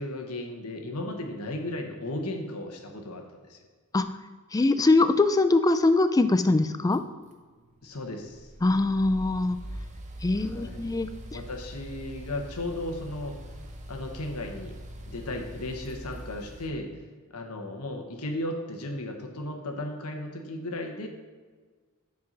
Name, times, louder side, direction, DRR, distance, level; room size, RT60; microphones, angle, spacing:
voice 1, 0.0-3.6 7.8-8.5 10.3-10.9 11.3-13.4 13.9-14.7 15.1-16.9 17.3-21.1, left 1 dB, 85° left, 3 dB, 1.2 m, -35 dB
voice 2, 4.5-7.0 8.6-9.6 10.2-11.1, left 2 dB, 15° left, 10 dB, 0.3 m, -22 dB
sound 1, 6.9-16.7, right 1 dB, 35° right, 0.8 m, -42 dB
7.5 x 4.7 x 5.4 m, 1.5 s
head